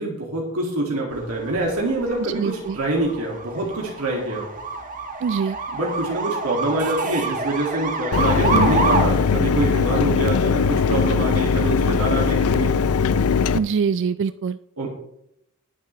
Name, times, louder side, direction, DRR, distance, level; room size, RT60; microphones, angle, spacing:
voice 1, 0.0-4.5 5.7-12.7 14.8-14.9, right 2 dB, 75° right, -2 dB, 2.3 m, -25 dB
sound 1, 1.1-9.0, right 4 dB, 35° right, 1.4 m, -27 dB
voice 2, 2.4-2.8 5.2-5.6 8.5-8.7 13.5-14.6, right 6 dB, 55° right, 14 dB, 0.3 m, -23 dB
Mechanisms, 8.1-13.6, left 5 dB, 75° left, 0.5 m, -20 dB
20.5 x 7.5 x 3.3 m, 0.78 s
head